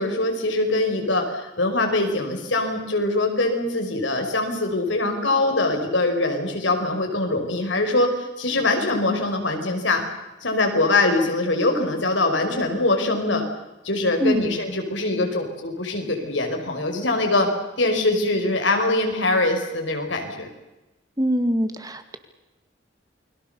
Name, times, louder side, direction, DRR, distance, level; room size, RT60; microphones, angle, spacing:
voice 1, 0.0-10.0 10.4-13.4 13.8-17.5 17.8-20.5, left 2 dB, 85° left, 4 dB, 5.5 m, -23 dB
voice 2, 21.2-22.2, equal, 20° right, 8 dB, 2.0 m, -23 dB
29.0 x 22.5 x 7.0 m, 1.0 s
head